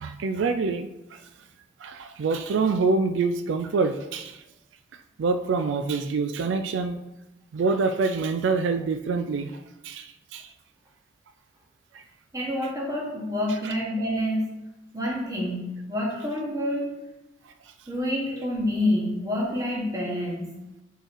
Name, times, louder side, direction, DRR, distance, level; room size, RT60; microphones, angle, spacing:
voice 1, 0.0-1.2 1.8-4.4 5.2-7.0 7.5-10.5 13.6-13.7, right 4 dB, 85° right, 9 dB, 0.3 m, -26 dB
voice 2, 12.3-14.5 14.9-16.9 17.9-20.5, left 1 dB, 20° right, -3 dB, 1.4 m, -27 dB
5.0 x 4.5 x 4.5 m, 0.98 s
head